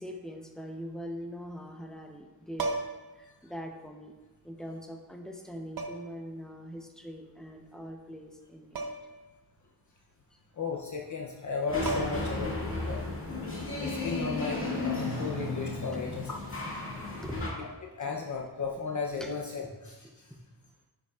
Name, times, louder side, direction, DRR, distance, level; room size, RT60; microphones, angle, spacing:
voice 1, 0.0-2.8 3.2-4.1 4.4-8.9 10.3-10.4 17.2-17.8 19.2-19.3, equal, ahead, 2 dB, 0.7 m, -42 dB
sound 1, 2.5-3.2 4.5-4.6 5.8-6.2 8.8-9.2 9.5-9.6 11.4-11.5 11.9-12.4 14.4-14.6, right 3 dB, 55° right, 0.8 m, -35 dB
voice 2, 10.6-13.0 13.8-16.7 17.6-17.7 18.0-20.3, left 5 dB, 45° left, 0 dB, 0.6 m, -35 dB
sound 2, 11.7-17.5, left 2 dB, 30° left, 2.1 m, -34 dB
9.4 x 6.8 x 2.4 m, 1.1 s
wide cardioid pair, 145°, 41 cm